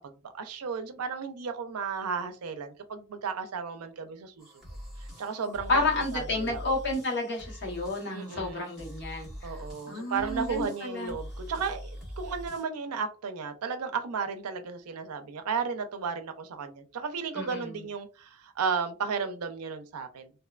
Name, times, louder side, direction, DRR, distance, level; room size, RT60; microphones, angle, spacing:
voice 1, 0.0-4.5 5.0-5.8 6.1-6.6 8.1-8.7 9.4-20.3, right 5 dB, 90° right, 0.4 m, -34 dB
sound 1, 4.4-12.6, equal, ahead, 1.1 m, -43 dB
voice 2, 5.7-9.5 9.9-11.2 17.3-17.7, left 2 dB, 55° left, 1.0 m, -31 dB
2.6 x 2.1 x 2.3 m
head